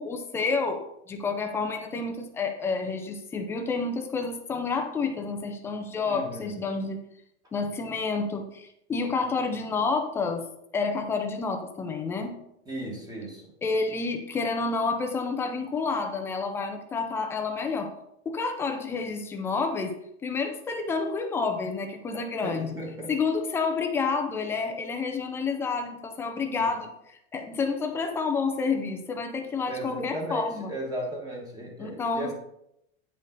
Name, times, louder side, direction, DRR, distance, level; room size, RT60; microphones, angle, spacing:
voice 1, 0.0-7.0 7.5-10.4 10.7-12.4 13.6-17.9 18.3-19.9 20.2-22.8 23.1-30.7 31.8-32.3, left 4 dB, 10° left, 4 dB, 0.3 m, -29 dB
voice 2, 6.1-6.5 12.7-13.5 22.1-23.1 26.6-26.7 29.7-32.3, right 1 dB, 10° right, -1 dB, 1.6 m, -36 dB
9.7 x 5.3 x 3.9 m, 0.78 s
supercardioid pair, 160°, 33 cm